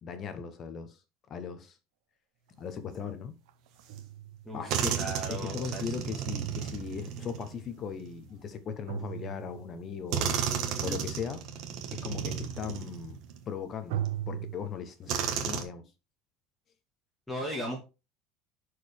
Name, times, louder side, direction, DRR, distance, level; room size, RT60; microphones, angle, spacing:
voice 1, 0.0-1.0 1.3-1.8 2.6-3.3 4.5-5.0 5.3-10.4 10.8-11.4 11.9-13.2 13.5-15.9, left 6 dB, 25° left, 1.0 m, -38 dB
sound 1, 2.5-2.6 3.5-7.1 8.9-10.0 13.9-14.6, right 12 dB, 85° right, 0.8 m, -39 dB
sound 2, 4.0-4.1 4.7-8.3 9.3-9.4 10.1-13.4 14.1-14.2 15.1-15.6, right 8 dB, 45° right, 1.4 m, -33 dB
voice 2, 4.4-5.9 17.3-17.8, equal, 5° left, 1.7 m, -37 dB
11.0 x 4.9 x 3.5 m
cardioid pair, 180°, 0 cm